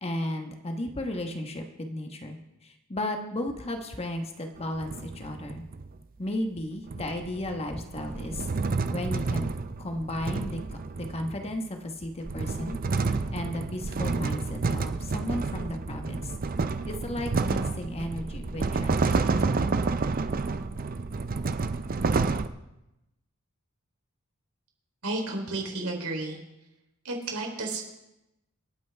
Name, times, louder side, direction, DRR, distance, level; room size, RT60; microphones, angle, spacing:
voice 1, 0.0-5.6 6.2-8.5 8.9-9.5 9.8-10.6 10.9-16.3 16.8-19.6, left 1 dB, 30° left, 5 dB, 1.3 m, -34 dB
sound 1, 4.6-5.9 6.9-11.5 12.0-22.5, right 4 dB, 40° right, 0.5 m, -29 dB
voice 2, 25.0-26.4 27.1-27.8, right 2 dB, 90° right, 1 dB, 3.4 m, -32 dB
26.5 x 9.3 x 3.5 m, 0.93 s
head